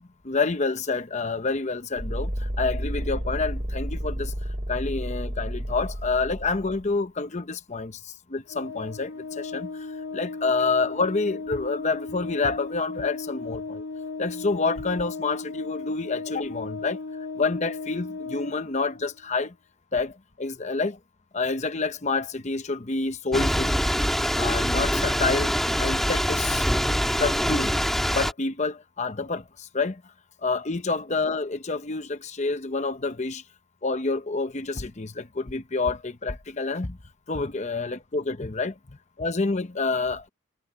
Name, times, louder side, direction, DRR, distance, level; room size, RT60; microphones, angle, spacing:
voice 1, 0.2-4.3 4.7-13.8 14.2-17.0 17.4-19.5 19.9-21.0 21.3-23.7 24.4-26.7 27.2-27.8 28.1-30.0 30.4-33.4 33.8-37.0 37.3-40.3, left 3 dB, 35° left, 0.9 m, -28 dB
sound 1, 2.0-6.9, equal, 45° right, 6.0 m, -31 dB
Organ, 8.5-19.2, left 3 dB, 70° left, 2.4 m, -36 dB
Thunder / Rain, 23.3-28.3, equal, ahead, 2.3 m, -24 dB
head